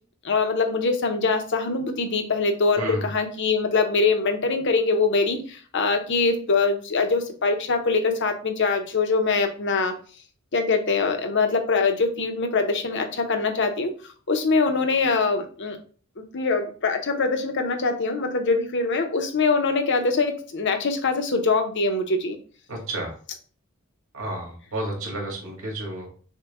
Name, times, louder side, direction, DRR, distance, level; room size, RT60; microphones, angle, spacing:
voice 1, 0.2-9.9 10.5-13.9 14.3-15.8 16.2-22.4, left 4 dB, 60° left, 5 dB, 0.8 m, -23 dB
voice 2, 2.8-3.1 22.7-23.1 24.1-26.1, right 1 dB, 85° right, -2 dB, 2.2 m, -31 dB
6.5 x 2.2 x 3.5 m, 0.41 s
head